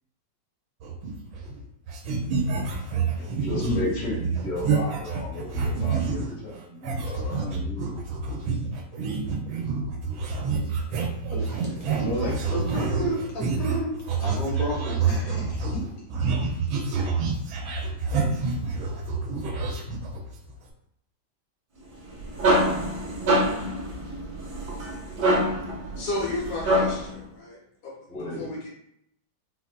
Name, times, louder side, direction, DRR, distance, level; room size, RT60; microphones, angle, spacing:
sound 1, 0.8-1.6 1.9-6.3 6.8-20.5, right 4 dB, 80° right, 1.4 m, -28 dB
voice 1, 2.9-7.9 26.6-26.8 28.1-28.5, left 1 dB, 45° left, -7 dB, 1.5 m, -33 dB
voice 2, 11.3-13.9 14.2-15.8, right 1 dB, 70° left, -4 dB, 1.7 m, -31 dB
sound 2, 21.9-27.2, right 1 dB, 60° right, 1.3 m, -25 dB
voice 3, 26.0-27.6 28.4-28.7, left 2 dB, 85° left, -5 dB, 1.9 m, -32 dB
4.0 x 2.4 x 2.2 m, 0.73 s
omnidirectional pair, 2.2 m